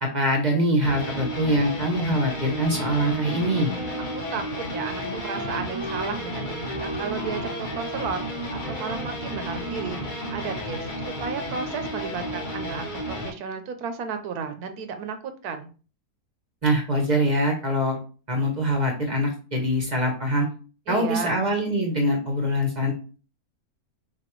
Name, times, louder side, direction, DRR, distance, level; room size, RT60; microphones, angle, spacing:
voice 1, 0.0-3.7 16.6-18.0 18.3-20.5 20.9-22.9, equal, 35° right, 1 dB, 0.8 m, -23 dB
sound 1, 0.8-13.3, equal, 40° left, 0.9 m, -33 dB
Wind instrument woodwind instrument, 2.7-11.2, equal, 15° left, 1.4 m, -38 dB
voice 2, 4.1-8.2 8.5-15.2 15.4-15.7 20.9-21.5, right 6 dB, 85° right, 7 dB, 1.2 m, -33 dB
6.0 x 2.6 x 3.0 m, 0.38 s
omnidirectional pair, 1.6 m